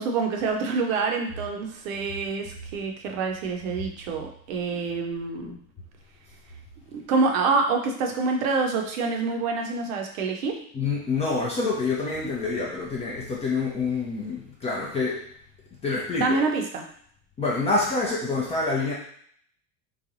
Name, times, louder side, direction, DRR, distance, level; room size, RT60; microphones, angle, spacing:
voice 1, 0.0-5.6 6.9-10.7 16.1-16.9, right 4 dB, 60° right, 3 dB, 0.7 m, -26 dB
voice 2, 10.7-15.3 15.8-16.4 17.4-18.9, left 3 dB, 15° left, -4 dB, 0.4 m, -27 dB
3.1 x 2.2 x 2.6 m, 0.62 s
figure-of-eight pair, 80°, 46 cm